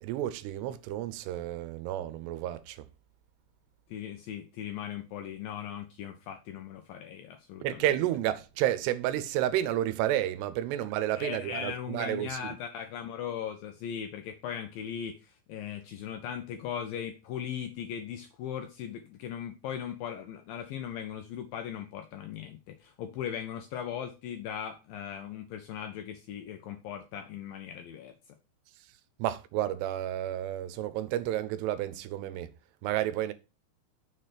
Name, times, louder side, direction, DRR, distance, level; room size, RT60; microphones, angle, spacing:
voice 1, 0.0-2.9 7.6-12.5 29.2-32.5 32.8-33.3, right 12 dB, 85° right, 2.7 m, -31 dB
voice 2, 3.9-7.8 11.1-28.1, left 9 dB, 80° left, 2.1 m, -38 dB
6.7 x 3.2 x 5.7 m
omnidirectional pair, 4.8 m